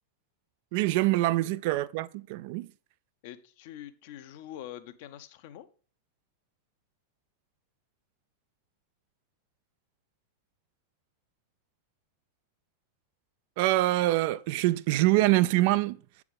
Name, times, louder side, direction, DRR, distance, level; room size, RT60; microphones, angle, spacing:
voice 1, 0.7-2.7 13.6-16.0, right 17 dB, 50° right, 0.3 m, -25 dB
voice 2, 3.2-5.7, left 12 dB, 50° left, 0.7 m, -44 dB
8.4 x 4.8 x 5.3 m
figure-of-eight pair, 90°, 0 cm